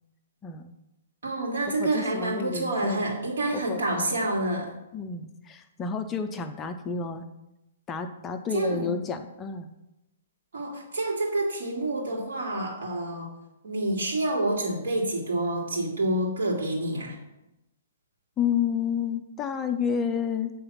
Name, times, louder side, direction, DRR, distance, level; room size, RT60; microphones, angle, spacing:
voice 1, 0.4-0.7 1.8-3.0 3.5-4.2 4.9-7.3 7.9-9.7 18.4-20.5, left 6 dB, 15° left, 7 dB, 0.4 m, -30 dB
voice 2, 1.2-4.7 8.5-9.0 10.5-13.3 13.6-17.2, right 1 dB, 80° right, -1 dB, 2.7 m, -28 dB
8.4 x 3.9 x 5.7 m, 0.92 s
hypercardioid pair, 165°, 0 cm